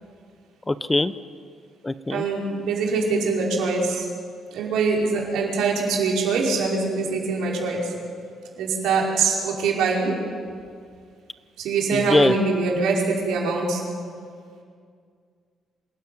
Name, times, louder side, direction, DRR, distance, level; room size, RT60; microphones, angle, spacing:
voice 1, 0.7-1.1 1.8-2.2 11.9-12.3, left 2 dB, 15° left, 13 dB, 0.8 m, -21 dB
voice 2, 2.1-4.1 4.5-7.9 8.6-10.1 11.6-13.8, right 4 dB, 85° right, -2 dB, 5.3 m, -23 dB
26.5 x 13.5 x 9.4 m, 2.2 s
cardioid pair, 90°, 0 cm